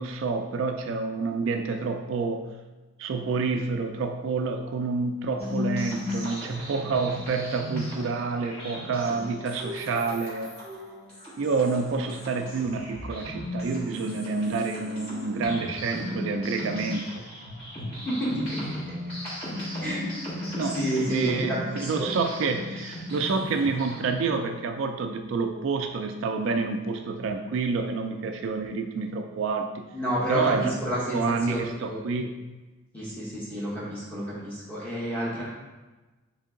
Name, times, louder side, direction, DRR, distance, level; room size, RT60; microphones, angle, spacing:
voice 1, 0.0-2.5 3.0-10.5 11.4-17.2 20.5-20.8 21.1-29.9 30.3-30.8 31.1-32.3, right 4 dB, 65° right, 6 dB, 0.3 m, -28 dB
sound 1, 5.4-24.3, left 1 dB, 30° left, 1.4 m, -36 dB
voice 2, 18.0-19.0 19.8-20.1 20.6-22.1 29.9-32.0 32.9-35.4, right 1 dB, 10° left, -7 dB, 1.2 m, -30 dB
3.7 x 3.4 x 3.6 m, 1.2 s
head